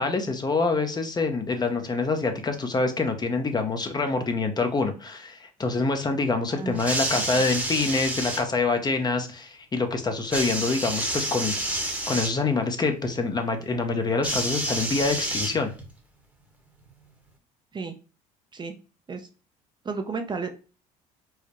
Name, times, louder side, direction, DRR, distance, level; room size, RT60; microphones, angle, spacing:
voice 1, 0.0-11.5 12.1-15.7, left 3 dB, 25° left, 6 dB, 0.7 m, -26 dB
voice 2, 6.5-6.8 7.1-7.4 17.7-17.9 18.5-18.7 19.1-19.3 19.8-20.5, right 4 dB, 30° right, 6 dB, 0.5 m, -33 dB
sound 1, 6.7-8.4 10.3-12.3 14.2-15.9 16.9-17.0, right 1 dB, 10° right, 1.0 m, -29 dB
4.7 x 2.1 x 3.0 m, 0.35 s
supercardioid pair, 85°, 16 cm